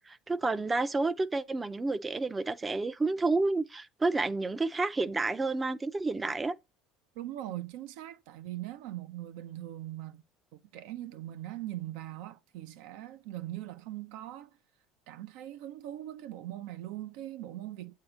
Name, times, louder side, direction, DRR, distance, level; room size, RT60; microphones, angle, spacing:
voice 1, 0.0-6.5, right 3 dB, 15° right, 0.5 m, -30 dB
voice 2, 7.1-10.2 10.5-14.5 15.1-17.9, right 14 dB, 75° right, 0.7 m, -41 dB
7.9 x 2.8 x 4.9 m
supercardioid pair, 130°, 0 cm